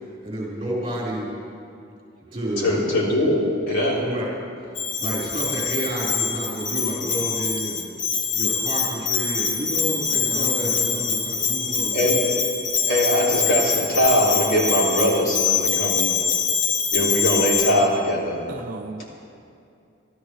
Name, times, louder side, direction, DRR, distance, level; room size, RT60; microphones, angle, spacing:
voice 1, 0.2-1.3 2.2-2.8 3.9-4.3 5.0-7.9 8.3-12.2, right 1 dB, 25° right, -7 dB, 4.5 m, -30 dB
voice 2, 2.6-4.0 11.9-12.2 12.9-16.1 16.9-18.4, equal, 80° left, -5 dB, 3.7 m, -21 dB
Bell, 4.8-17.7, left 5 dB, 60° left, 1.8 m, -24 dB
voice 3, 10.3-11.3 18.5-19.0, right 1 dB, 45° right, 4 dB, 0.7 m, -34 dB
26.5 x 13.0 x 3.3 m, 2.5 s
head